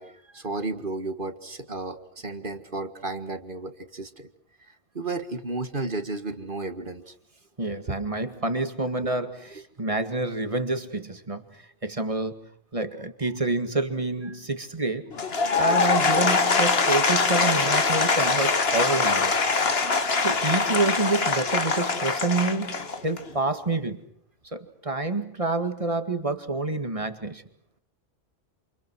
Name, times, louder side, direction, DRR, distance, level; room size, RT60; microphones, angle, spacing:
voice 1, 0.0-4.3 4.7-7.1 7.9-8.0, right 3 dB, 45° right, 8 dB, 2.0 m, -33 dB
voice 2, 7.6-12.4 12.7-15.1 15.5-19.4 20.2-24.0 24.4-27.4, right 3 dB, 30° right, 8 dB, 2.2 m, -28 dB
Applause / Crowd, 15.1-23.3, left 4 dB, 55° left, 1.9 m, -23 dB
28.5 x 28.5 x 6.2 m, 0.66 s
omnidirectional pair, 1.2 m